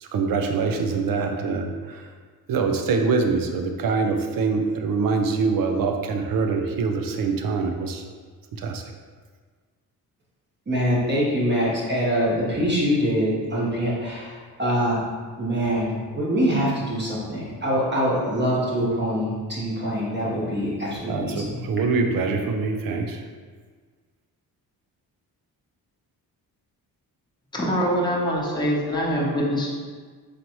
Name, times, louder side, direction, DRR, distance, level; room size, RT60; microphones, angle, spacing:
voice 1, 0.0-2.1 2.5-8.1 8.6-8.8 21.1-23.2, right 4 dB, 60° right, 4 dB, 0.6 m, -24 dB
voice 2, 10.7-15.0 15.4-21.4, equal, 30° right, -6 dB, 1.0 m, -24 dB
voice 3, 27.5-29.7, equal, 10° left, -5 dB, 0.8 m, -24 dB
4.0 x 3.1 x 3.0 m, 1.5 s
cardioid pair, 95°, 39 cm